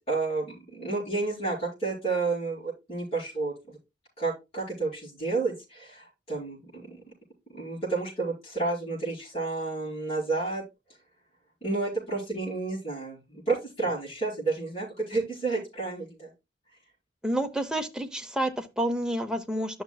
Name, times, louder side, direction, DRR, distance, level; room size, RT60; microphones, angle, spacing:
voice 1, 0.1-3.8 4.2-7.0 7.5-10.6 11.6-16.3, right 3 dB, 30° left, 4.7 m, -31 dB
voice 2, 17.2-19.8, right 1 dB, 5° right, 0.7 m, -29 dB
11.5 x 5.9 x 2.3 m
head